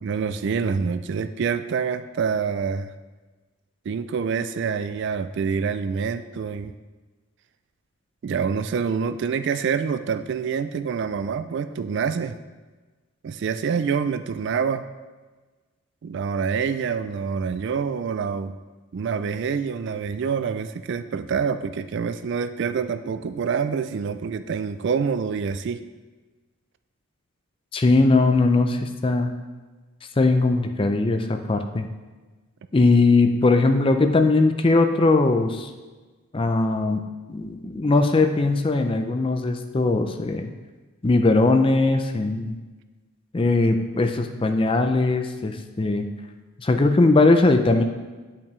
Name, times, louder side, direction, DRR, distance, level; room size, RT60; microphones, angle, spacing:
voice 1, 0.0-2.9 3.9-6.7 8.2-12.4 13.2-14.9 16.0-18.6 18.9-25.8, right 6 dB, 55° right, 11 dB, 0.3 m, -26 dB
voice 2, 27.7-29.3 30.2-31.9 32.7-35.7 36.3-37.0 37.3-40.5 41.0-42.6 43.3-46.0 46.6-47.8, left 3 dB, 25° left, 6 dB, 0.4 m, -20 dB
8.7 x 5.7 x 3.1 m, 1.3 s
head